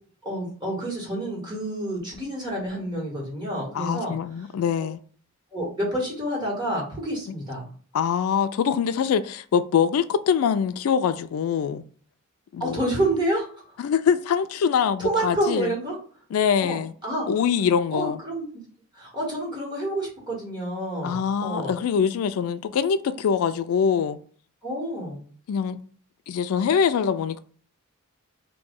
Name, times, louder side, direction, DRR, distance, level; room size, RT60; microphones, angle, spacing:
voice 1, 0.2-4.1 4.8-4.9 5.5-7.7 12.6-13.5 15.0-16.0 16.6-17.3 17.9-18.5 19.0-21.7 24.6-25.2, right 1 dB, 20° right, 1.5 m, -28 dB
voice 2, 3.7-5.0 7.9-11.8 12.5-12.8 13.8-15.7 16.3-16.9 17.3-18.2 21.0-24.2 25.5-25.8 26.3-27.4, left 7 dB, 80° left, 0.3 m, -23 dB
3.0 x 2.6 x 3.6 m
head